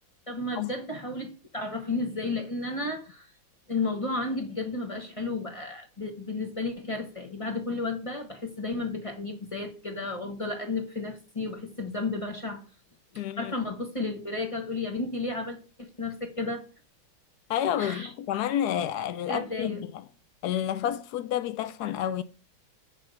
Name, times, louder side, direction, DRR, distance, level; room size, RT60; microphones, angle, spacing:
voice 1, 0.3-3.3 3.7-12.6 13.1-16.6 17.8-18.1 19.3-19.9, left 3 dB, 25° left, 0.9 m, -33 dB
voice 2, 13.2-13.5 17.5-19.7 20.4-22.2, left 10 dB, 80° left, 0.9 m, -29 dB
10.0 x 3.4 x 6.5 m
omnidirectional pair, 2.2 m